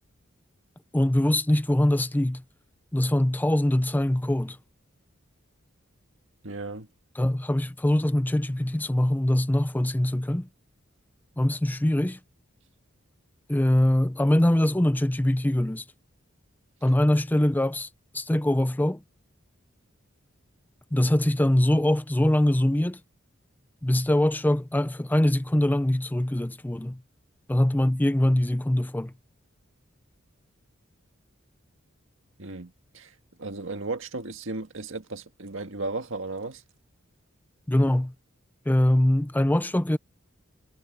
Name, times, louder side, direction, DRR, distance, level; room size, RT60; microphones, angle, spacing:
voice 1, 0.9-2.4 2.9-4.6 7.2-10.5 11.4-12.2 13.5-15.8 16.8-17.9 18.1-19.0 20.9-23.0 23.8-27.0 27.5-29.1 37.7-38.1 38.7-40.0, left 1 dB, 10° left, 0.5 m, -23 dB
voice 2, 6.4-6.9 32.4-33.1 33.4-36.6, right 3 dB, 70° right, 1.9 m, -35 dB
head